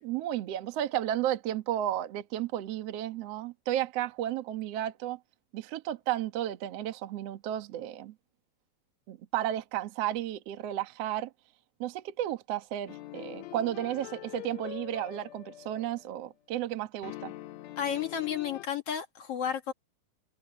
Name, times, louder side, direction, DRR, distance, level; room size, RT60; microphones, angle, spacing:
voice 1, 0.0-5.2 5.5-8.1 9.1-11.3 11.8-17.3, right 12 dB, 55° right, 1.9 m, -33 dB
sound 1, 12.9-16.2 17.0-18.6, left 16 dB, 85° left, 1.6 m, -44 dB
voice 2, 17.8-19.7, left 9 dB, 50° left, 2.0 m, -32 dB
omnidirectional pair, 4.3 m